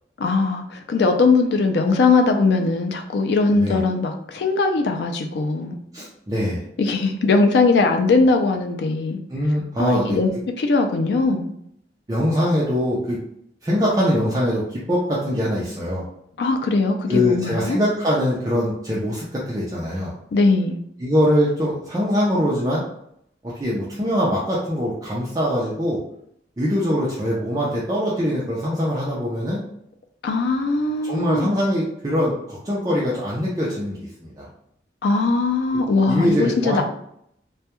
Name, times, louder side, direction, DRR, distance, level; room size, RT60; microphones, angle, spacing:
voice 1, 0.2-5.8 6.8-9.2 9.8-10.3 10.6-11.5 16.4-17.8 20.3-20.8 30.2-31.5 35.0-36.8, left 3 dB, 75° left, 5 dB, 0.3 m, -20 dB
voice 2, 5.9-6.6 9.3-10.2 12.1-13.2 13.6-16.1 17.1-20.1 21.0-22.8 23.4-26.0 26.6-29.6 31.0-34.5 36.1-36.8, equal, 20° right, -6 dB, 0.4 m, -22 dB
2.2 x 2.1 x 2.8 m, 0.71 s
head